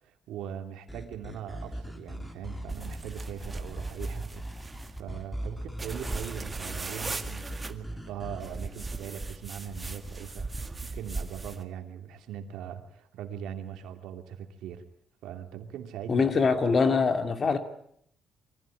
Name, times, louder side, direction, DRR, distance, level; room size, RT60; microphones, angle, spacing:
voice 1, 0.0-14.8 15.2-16.4, right 9 dB, 85° right, 6 dB, 2.8 m, -41 dB
sound 1, 0.9-8.5, right 1 dB, 10° left, 3.4 m, -39 dB
sound 2, 2.7-5.0 5.8-7.7 8.4-11.6, right 3 dB, 25° right, 2.0 m, -38 dB
voice 2, 16.1-17.6, left 4 dB, 40° left, 8 dB, 2.7 m, -23 dB
24.0 x 16.0 x 10.0 m, 0.69 s
cardioid pair, 90°, 0 cm